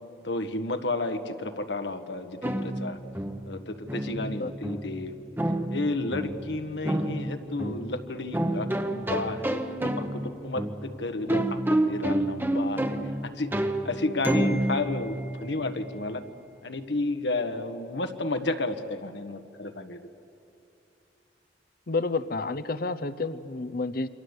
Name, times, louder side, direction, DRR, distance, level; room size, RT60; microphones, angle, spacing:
voice 1, 0.2-3.0 3.5-5.2 5.7-9.6 10.0-11.4 11.7-13.0 13.2-16.2 16.6-20.0, left 2 dB, 75° left, 8 dB, 1.4 m, -32 dB
sound 1, 2.4-16.0, right 1 dB, 10° right, 1.0 m, -30 dB
voice 2, 21.9-24.1, left 3 dB, 55° left, 15 dB, 0.8 m, -30 dB
27.5 x 24.5 x 8.1 m, 2.7 s
head